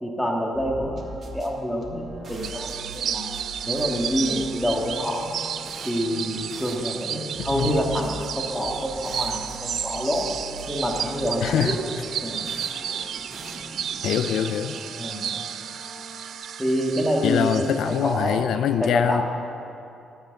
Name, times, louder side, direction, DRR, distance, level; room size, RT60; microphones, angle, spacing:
voice 1, 0.0-3.3 3.6-5.3 5.8-10.3 10.7-11.7 12.2-12.4 15.0-15.3 16.6-18.4 18.8-19.2, equal, ahead, -1 dB, 2.1 m, -27 dB
sound 1, 0.5-14.2, right 1 dB, 45° right, 1.6 m, -42 dB
sound 2, 1.0-16.4, right 2 dB, 30° right, 3.1 m, -45 dB
sound 3, 2.4-18.4, right 8 dB, 65° right, 0.4 m, -33 dB
voice 2, 11.4-11.8 14.0-14.8 17.2-19.2, left 9 dB, 75° left, 10 dB, 0.5 m, -24 dB
12.0 x 8.1 x 7.2 m, 2.6 s
cardioid pair, 90°, 0 cm